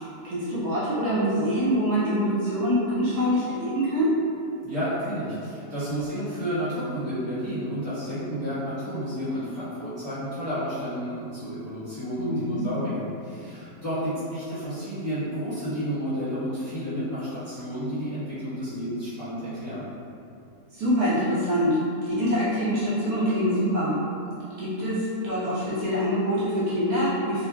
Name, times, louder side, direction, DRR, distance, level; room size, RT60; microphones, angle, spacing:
voice 1, 0.2-4.2 12.2-12.7 20.7-21.8 22.0-24.0 24.6-27.5, equal, 70° right, -9 dB, 1.1 m, -25 dB
voice 2, 4.6-19.9, equal, 10° right, -15 dB, 1.0 m, -31 dB
3.4 x 2.2 x 2.3 m, 2.6 s
omnidirectional pair, 1.8 m